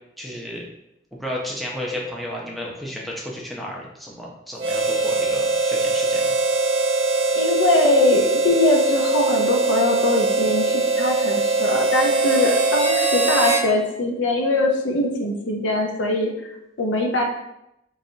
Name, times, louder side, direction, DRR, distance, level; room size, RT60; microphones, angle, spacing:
voice 1, 0.2-0.6 1.2-6.3, left 1 dB, ahead, -3 dB, 0.6 m, -33 dB
Harmonica, 4.6-13.7, right 3 dB, 30° right, 0.7 m, -21 dB
voice 2, 7.3-16.5 16.8-17.2, left 2 dB, 90° left, 1 dB, 0.7 m, -22 dB
4.0 x 3.1 x 2.7 m, 0.84 s
head